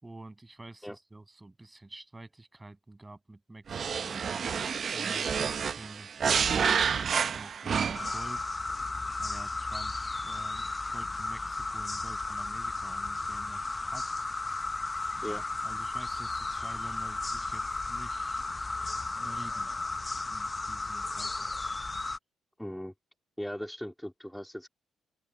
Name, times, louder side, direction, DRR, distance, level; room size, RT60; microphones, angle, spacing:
voice 1, 0.0-4.3 4.9-8.5 9.2-14.2 15.2-18.4 19.2-19.7 20.3-21.3, right 2 dB, 15° right, 7.4 m, -48 dB
sound 1, 3.7-8.3, right 7 dB, 50° right, 0.7 m, -29 dB
sound 2, 7.9-22.2, left 3 dB, 20° left, 0.7 m, -34 dB
voice 2, 22.6-22.9 23.4-24.7, equal, 5° left, 2.7 m, -38 dB
open air
cardioid pair, 90°, 0 cm